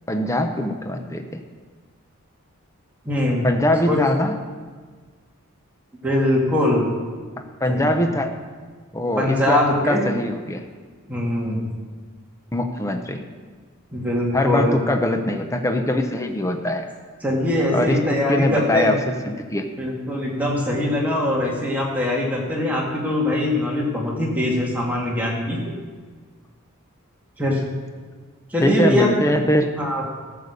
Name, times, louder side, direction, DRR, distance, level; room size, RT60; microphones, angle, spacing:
voice 1, 0.1-1.4 3.4-4.3 7.6-8.3 8.9-10.6 12.5-13.2 14.3-16.9 17.7-19.7 28.6-29.7, left 1 dB, 15° left, 5 dB, 0.7 m, -22 dB
voice 2, 3.1-3.5 3.9-4.0 6.0-6.9 7.7-8.0 9.2-10.0 11.1-11.6 13.9-14.8 17.2-18.9 19.8-25.6 27.4-27.6 28.5-29.1 29.8-30.1, left 1 dB, 5° right, -3 dB, 2.1 m, -22 dB
13.5 x 6.8 x 6.7 m, 1.5 s
head